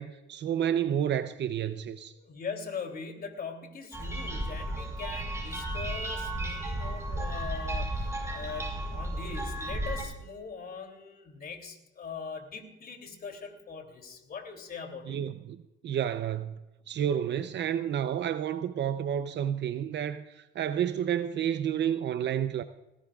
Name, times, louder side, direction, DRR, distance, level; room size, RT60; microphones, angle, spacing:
voice 1, 0.0-2.1 15.1-16.5 16.9-22.6, right 9 dB, 60° right, 0.7 m, -30 dB
voice 2, 2.1-7.9 8.3-15.2, left 5 dB, 50° left, 3.0 m, -41 dB
sound 1, 3.9-10.0, right 1 dB, 15° right, 5.2 m, -34 dB
19.5 x 16.5 x 2.4 m
cardioid pair, 90°, 20 cm